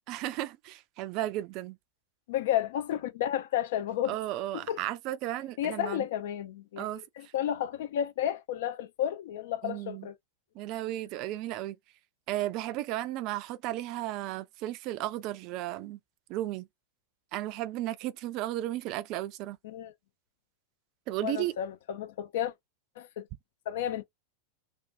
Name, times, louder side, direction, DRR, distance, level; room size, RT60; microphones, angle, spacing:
voice 1, 0.1-1.8 4.1-6.0 6.8-7.3 9.6-10.1 10.6-11.8 12.3-16.0 16.3-16.7 17.3-19.6 21.1-21.5, right 15 dB, 40° right, 0.3 m, -34 dB
voice 2, 2.3-4.2 4.5-4.8 5.6-10.1 19.6-19.9 21.2-22.5 23.0-23.3 23.7-24.0, left 11 dB, 55° left, 0.4 m, -32 dB
2.5 x 2.2 x 2.5 m
figure-of-eight pair, 90°, 0 cm